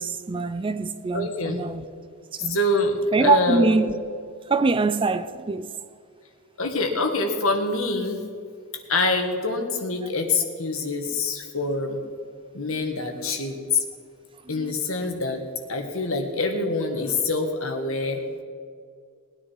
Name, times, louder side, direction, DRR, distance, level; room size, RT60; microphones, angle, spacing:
voice 1, 0.0-1.8 2.3-2.6 3.1-3.9 4.5-5.8 10.0-10.1 14.5-14.8, right 4 dB, 25° right, 0.4 m, -24 dB
voice 2, 1.1-1.6 2.4-2.9 3.2-3.7 6.6-8.2 8.9-12.0 12.5-13.8 14.5-15.4 15.7-18.2, left 3 dB, 65° left, 1.8 m, -25 dB
19.0 x 9.9 x 4.8 m
head